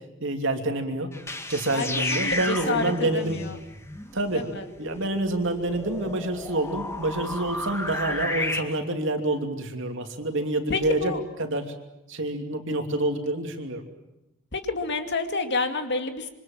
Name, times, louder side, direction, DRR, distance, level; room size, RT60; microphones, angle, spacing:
voice 1, 0.2-1.1 1.5-3.4 4.1-4.5 4.8-11.1 11.4-11.7 12.1-13.8, right 2 dB, 60° right, 5 dB, 3.0 m, -27 dB
sound 1, 1.1-8.6, left 2 dB, 15° left, 1.8 m, -33 dB
voice 2, 1.7-3.6 4.3-4.7 10.7-11.2 14.5-16.3, left 3 dB, 55° left, 6 dB, 2.3 m, -29 dB
26.5 x 24.5 x 7.5 m, 0.91 s
head